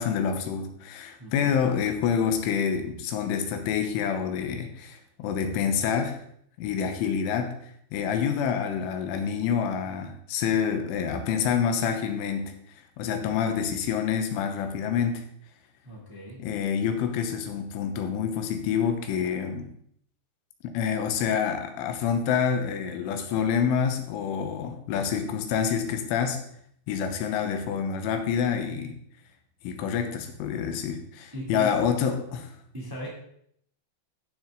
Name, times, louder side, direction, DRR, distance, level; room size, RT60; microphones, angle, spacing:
voice 1, 0.0-6.2 6.6-7.6 7.9-12.6 13.0-15.3 16.4-19.7 20.6-26.4 26.9-29.0 29.6-32.5, left 7 dB, 90° left, 6 dB, 3.5 m, -27 dB
voice 2, 1.2-1.5 15.8-16.4 31.3-31.8 32.7-33.1, right 1 dB, 10° right, -5 dB, 1.5 m, -38 dB
14.5 x 6.2 x 3.9 m, 0.68 s
omnidirectional pair, 5.5 m